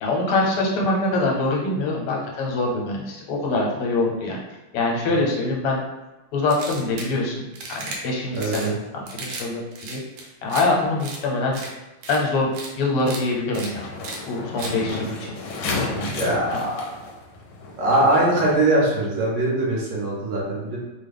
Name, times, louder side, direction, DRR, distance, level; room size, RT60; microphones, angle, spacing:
voice 1, 0.0-4.4 4.7-5.8 6.3-7.5 7.8-10.0 10.4-11.6 12.1-13.9 14.3-15.4 16.0-16.2 16.5-16.6, left 2 dB, 90° left, -1 dB, 1.7 m, -24 dB
sound 1, 6.5-7.1 7.5-8.0 8.4-8.7 9.1-9.5 9.7-10.6 11.0-11.2 11.5-11.7 12.0-12.2 12.5-12.7 13.0-13.2 13.5-13.7 14.0-14.2 14.6-14.7, right 3 dB, 85° right, 1.6 m, -35 dB
voice 2, 8.3-8.8 15.0-15.3 16.2-16.9 17.8-20.8, right 1 dB, 65° right, -4 dB, 1.4 m, -22 dB
sound 2, 13.5-19.0, left 3 dB, 70° left, 1.0 m, -32 dB
3.8 x 2.1 x 3.4 m, 1.1 s
omnidirectional pair, 2.4 m